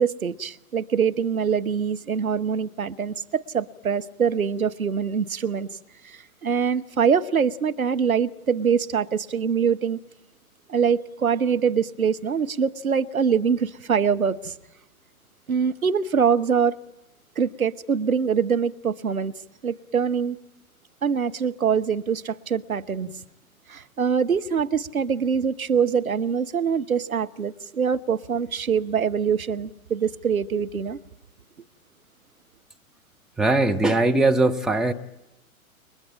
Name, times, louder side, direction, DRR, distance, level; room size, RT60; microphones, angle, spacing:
voice 1, 0.0-5.7 6.0-10.0 10.7-14.5 15.5-16.8 17.4-19.3 19.6-20.4 21.0-23.1 23.7-31.0, right 6 dB, 75° right, 1.3 m, -24 dB
voice 2, 33.4-34.9, right 2 dB, ahead, 0.9 m, -20 dB
29.5 x 23.0 x 8.8 m
figure-of-eight pair, 115°, 43 cm